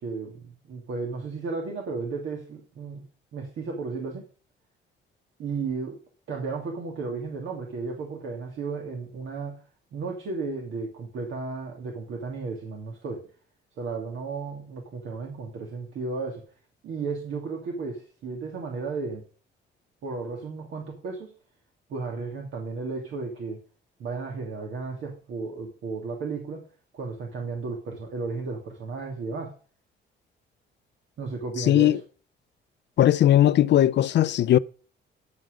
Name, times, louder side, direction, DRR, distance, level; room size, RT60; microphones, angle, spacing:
voice 1, 0.0-3.0 3.3-4.3 5.4-6.0 6.3-9.6 9.9-13.3 13.8-16.4 16.8-19.2 20.0-21.3 21.9-23.6 24.0-26.6 26.9-29.5 31.2-32.0, right 4 dB, 75° right, 2.5 m, -34 dB
voice 2, 31.7-32.0 33.0-34.6, left 12 dB, 65° left, 0.5 m, -18 dB
14.5 x 6.3 x 5.0 m
cardioid pair, 90°, 20 cm